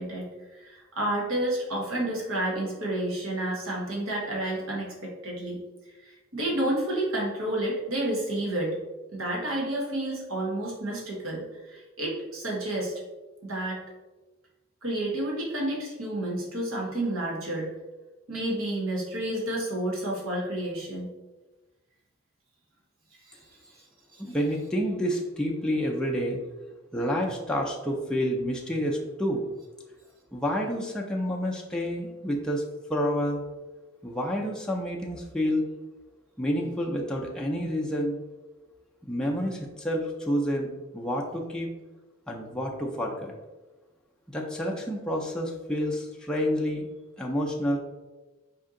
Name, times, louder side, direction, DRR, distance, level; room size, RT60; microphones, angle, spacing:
voice 1, 0.0-5.6 6.0-8.8 9.1-13.0 13.4-13.8 14.8-17.7 18.3-21.1 23.2-23.8 24.1-24.2, right 1 dB, 85° right, -3 dB, 1.1 m, -30 dB
voice 2, 24.2-26.4 26.9-29.5 30.3-32.6 32.9-33.4 34.0-35.7 36.4-38.2 39.1-41.7 42.3-43.3 44.3-46.9 47.2-47.8, equal, 5° left, -2 dB, 0.4 m, -29 dB
4.3 x 2.7 x 3.7 m, 1.1 s
head